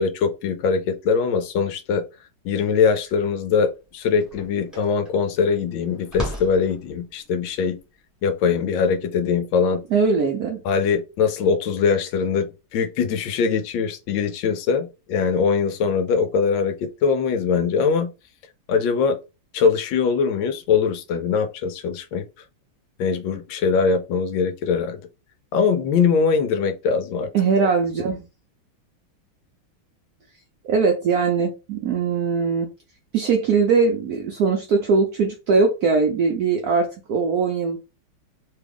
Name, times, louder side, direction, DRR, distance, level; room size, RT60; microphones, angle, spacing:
voice 1, 0.0-2.0 2.4-7.8 8.2-9.8 10.6-18.1 18.7-19.2 19.5-22.2 23.0-25.0 25.5-27.3 27.6-27.7, left 5 dB, 80° left, 1.3 m, -22 dB
sound 1, 3.8-10.1, equal, ahead, 0.7 m, -38 dB
voice 2, 9.9-10.6 27.3-28.3 30.6-32.7 33.1-37.8, right 4 dB, 75° right, 0.8 m, -21 dB
3.3 x 2.3 x 3.5 m
omnidirectional pair, 2.2 m